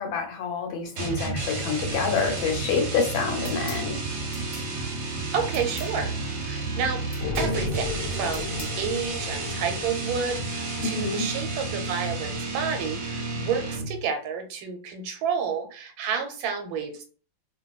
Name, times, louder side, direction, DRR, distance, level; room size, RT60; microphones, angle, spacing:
voice 1, 0.0-4.0 10.8-11.3, left 5 dB, 85° left, 3 dB, 1.6 m, -27 dB
sound 1, 1.0-14.0, right 3 dB, 60° right, 1.0 m, -31 dB
sound 2, 3.4-3.9 4.3-4.7 5.5-5.9 7.1-7.5 8.3-8.8, left 1 dB, 5° right, 0.5 m, -42 dB
voice 2, 5.3-6.1 6.4-7.0 7.4-17.0, right 6 dB, 85° right, 5 dB, 1.5 m, -30 dB
sound 3, 7.2-10.9, left 4 dB, 65° left, 1.2 m, -35 dB
3.1 x 2.5 x 2.3 m, 0.38 s
omnidirectional pair, 2.1 m